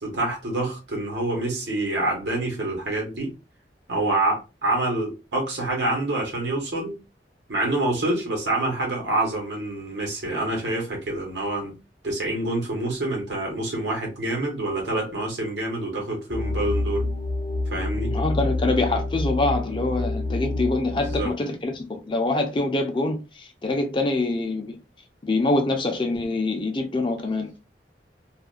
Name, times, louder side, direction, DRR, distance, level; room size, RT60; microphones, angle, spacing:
voice 1, 0.0-3.3 3.9-7.0 7.5-11.7 12.0-17.1 17.7-18.2 20.9-21.3, right 2 dB, 80° right, 1.0 m, -27 dB
sound 1, 16.3-21.3, left 2 dB, 50° left, 0.8 m, -27 dB
voice 2, 18.1-24.8 25.2-27.6, left 2 dB, 30° left, 0.5 m, -25 dB
2.4 x 2.1 x 2.4 m
head